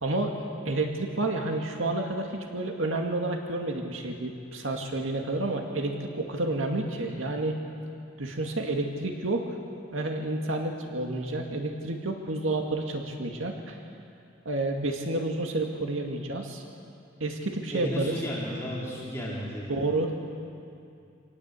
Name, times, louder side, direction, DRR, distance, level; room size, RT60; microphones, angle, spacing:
voice 1, 0.0-7.6 8.2-9.5 9.9-13.8 14.5-16.6 17.2-18.2 19.7-20.3, right 2 dB, 80° right, 2 dB, 2.1 m, -30 dB
voice 2, 17.7-19.8, equal, 15° left, -6 dB, 3.5 m, -34 dB
26.0 x 18.5 x 8.4 m, 2.5 s
head